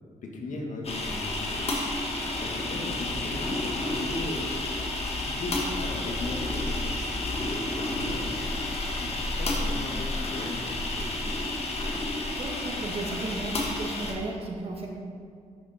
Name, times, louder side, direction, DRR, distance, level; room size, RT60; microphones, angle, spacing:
voice 1, 0.2-1.8 2.4-4.5 5.2-8.4 8.9-11.3, left 2 dB, 75° left, 0 dB, 1.7 m, -37 dB
sound 1, 0.8-14.1, left 2 dB, 50° left, 1.7 m, -31 dB
voice 2, 12.4-14.9, right 2 dB, 50° right, 0 dB, 1.7 m, -34 dB
12.0 x 6.5 x 4.2 m, 2.2 s
cardioid pair, 90°, 13 cm